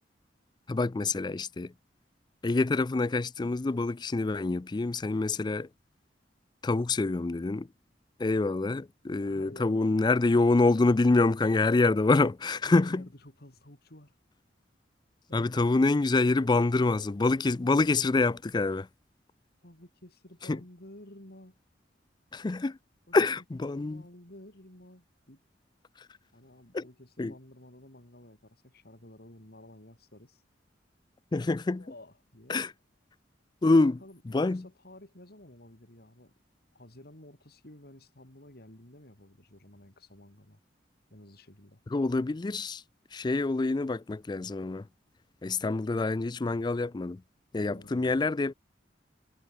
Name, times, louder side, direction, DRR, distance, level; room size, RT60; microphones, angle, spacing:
voice 1, 0.7-1.7 2.4-5.7 6.6-7.7 8.2-13.0 15.3-18.9 20.5-20.6 22.3-22.8 23.1-24.0 26.7-26.8 27.2-27.3 31.3-31.8 32.5-32.7 33.6-34.0 34.3-34.6 41.9-42.8 43.1-44.9 45.4-47.2 47.5-48.5, left 3 dB, 25° left, 0.4 m, -26 dB
voice 2, 9.2-10.1 12.6-14.1 18.5-18.6 19.6-21.6 23.1-23.2 23.7-25.4 26.3-30.4 31.7-32.6 33.6-36.3 36.7-40.6 41.1-41.8 47.7-48.2, left 1 dB, 60° left, 4.5 m, -52 dB
head